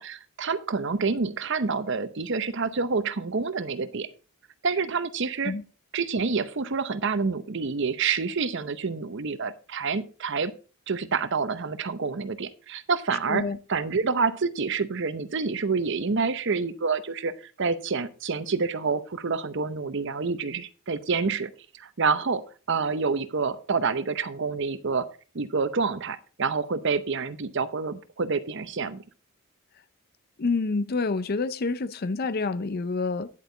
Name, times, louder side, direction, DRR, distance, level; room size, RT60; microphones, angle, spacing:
voice 1, 0.0-4.1 4.6-5.5 5.9-10.5 10.9-25.1 25.3-29.0, right 4 dB, 55° right, 0.7 m, -28 dB
voice 2, 30.4-33.3, left 3 dB, 45° left, 0.5 m, -27 dB
10.0 x 8.2 x 3.9 m
head